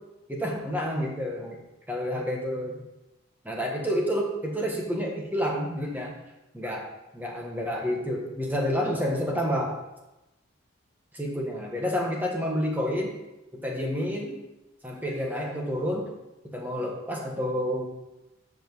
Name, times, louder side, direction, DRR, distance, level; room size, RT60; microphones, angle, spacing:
voice 1, 0.3-1.6 1.9-2.8 3.4-6.1 6.5-6.9 7.1-9.8 11.1-13.1 13.5-14.4 14.8-16.1 16.5-17.9, equal, 10° right, -1 dB, 1.4 m, -29 dB
14.5 x 5.0 x 4.0 m, 0.97 s
head